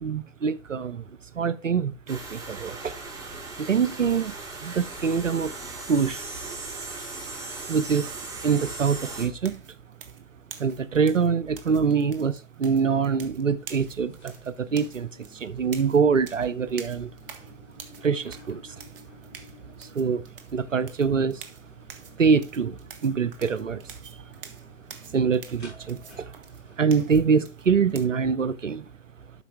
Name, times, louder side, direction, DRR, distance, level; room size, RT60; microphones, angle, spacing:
voice 1, 0.0-2.9 3.6-4.3 4.6-5.5 5.9-6.3 7.7-9.6 10.6-17.1 18.0-18.8 19.8-21.5 22.2-24.3 25.0-26.3 26.8-28.9, right 6 dB, 85° right, 0.6 m, -25 dB
sound 1, 2.1-9.3, right 3 dB, 10° right, 2.6 m, -38 dB
sound 2, 9.4-28.0, right 6 dB, 45° right, 1.5 m, -47 dB
sound 3, 13.5-27.5, left 3 dB, 30° left, 4.8 m, -54 dB
12.0 x 5.6 x 3.4 m
figure-of-eight pair, 120°, 37 cm